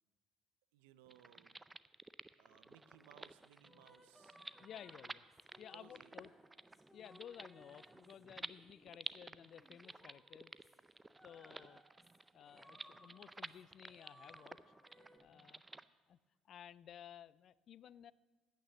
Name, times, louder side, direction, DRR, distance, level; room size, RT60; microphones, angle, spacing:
voice 1, 0.7-1.6 2.4-4.4 5.7-6.5 11.5-11.8, right 12 dB, 85° right, 15 dB, 0.5 m, -65 dB
sound 1, 1.1-15.8, right 2 dB, 15° right, 0.5 m, -53 dB
sound 2, 2.5-15.2, equal, ahead, 1.9 m, -66 dB
voice 2, 4.6-5.2 5.6-6.3 6.9-10.5 11.2-11.8 12.3-14.6 15.2-15.6 16.1-16.2 16.4-18.1, left 9 dB, 60° left, 20 dB, 0.3 m, -55 dB
9.1 x 9.1 x 7.2 m, 1.4 s
hypercardioid pair, 60°, 0 cm